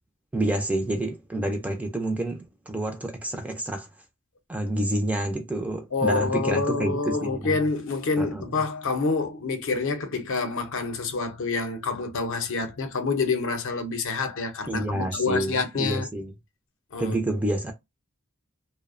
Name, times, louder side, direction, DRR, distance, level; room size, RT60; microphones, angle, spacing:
voice 1, 0.3-3.9 4.5-7.5 8.2-8.4 14.7-16.3 17.0-17.7, right 1 dB, 5° right, 0.3 m, -28 dB
voice 2, 5.9-16.1 16.9-17.2, left 4 dB, 60° left, 0.5 m, -27 dB
2.5 x 2.0 x 2.4 m
head